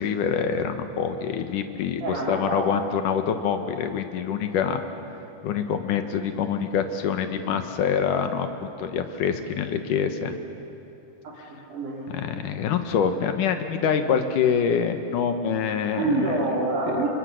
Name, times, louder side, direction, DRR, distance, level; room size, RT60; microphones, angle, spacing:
voice 1, 0.0-4.8 5.4-10.4 12.1-16.4 16.9-17.1, left 7 dB, 90° left, 8 dB, 2.9 m, -25 dB
voice 2, 2.0-3.0 11.2-12.4 15.9-17.1, right 2 dB, 75° right, -5 dB, 4.1 m, -27 dB
29.0 x 25.0 x 6.5 m, 2.8 s
omnidirectional pair, 3.5 m